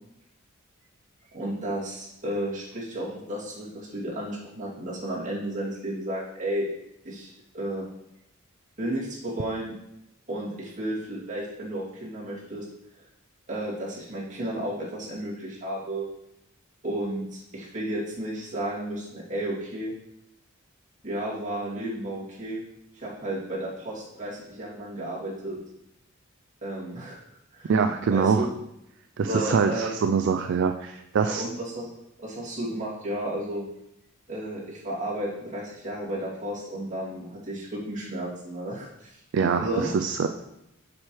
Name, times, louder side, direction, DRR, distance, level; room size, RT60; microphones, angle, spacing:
voice 1, 1.3-6.7 7.0-7.9 8.8-9.7 10.3-12.7 13.5-16.1 16.8-19.9 21.0-22.6 22.9-25.6 26.6-27.2 27.5-27.7 28.1-28.5 29.2-30.0 31.2-31.9 32.2-33.6 34.3-39.2 39.6-39.9, right 1 dB, 40° right, -7 dB, 2.6 m, -33 dB
voice 2, 27.6-28.5 29.2-31.4 39.3-40.3, right 5 dB, 60° right, 6 dB, 0.4 m, -24 dB
7.3 x 6.4 x 3.1 m, 0.84 s
head